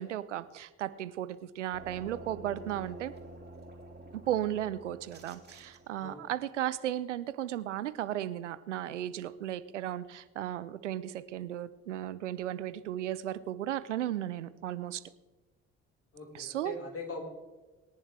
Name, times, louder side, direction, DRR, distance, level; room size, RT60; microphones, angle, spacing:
voice 1, 0.0-3.1 4.1-15.0 16.3-16.8, right 12 dB, 85° right, 15 dB, 0.5 m, -35 dB
sound 1, 1.7-6.2, right 1 dB, 30° right, 3.3 m, -49 dB
voice 2, 16.1-17.3, left 3 dB, 40° left, 0 dB, 4.3 m, -41 dB
23.0 x 10.5 x 3.2 m, 1.2 s
figure-of-eight pair, 45°, 35 cm